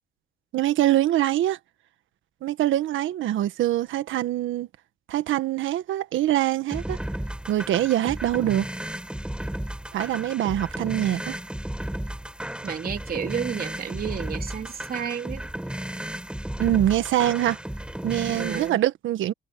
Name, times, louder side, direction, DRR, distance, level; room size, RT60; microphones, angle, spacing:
voice 1, 0.5-1.6 2.4-4.7 5.1-7.0 7.5-8.7 9.9-11.4 16.6-17.6 18.0-19.3, right 13 dB, 80° right, 1.4 m, -24 dB
sound 1, 6.7-18.7, right 1 dB, 5° right, 5.1 m, -34 dB
voice 2, 12.6-15.4 18.3-18.8, right 7 dB, 50° right, 3.3 m, -31 dB
cardioid pair, 90°, 20 cm